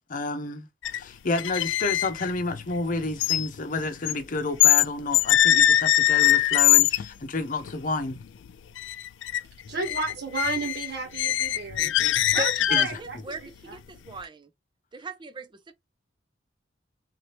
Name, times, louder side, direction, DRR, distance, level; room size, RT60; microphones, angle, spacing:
voice 1, 0.1-0.7 0.9-8.2 12.7-12.9, left 3 dB, 45° left, 0.8 m, -30 dB
sound 1, 0.8-1.0 1.3-4.9 5.1-7.1 7.6-7.7 8.1-8.5 8.8-9.4 9.7-13.1, left 12 dB, 75° left, 0.3 m, -22 dB
voice 2, 9.7-13.8, right 4 dB, 65° right, 1.8 m, -33 dB
voice 3, 12.8-14.5 14.9-15.7, right 1 dB, 25° right, 0.5 m, -38 dB
3.9 x 2.8 x 3.3 m
head